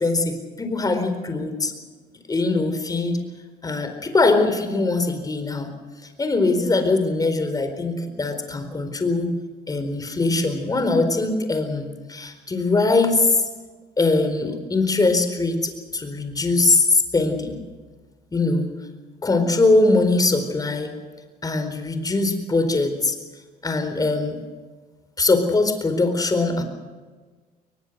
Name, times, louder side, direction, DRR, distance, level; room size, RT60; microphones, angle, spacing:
voice 1, 0.0-1.7 2.3-3.2 3.6-5.7 6.2-9.3 9.7-13.4 14.0-17.6 18.3-18.7 19.2-20.9 21.4-23.2 23.6-24.4 25.2-26.6, left 3 dB, 20° left, 7 dB, 4.3 m, -21 dB
22.0 x 21.0 x 6.7 m, 1.4 s
cardioid pair, 110°, 17 cm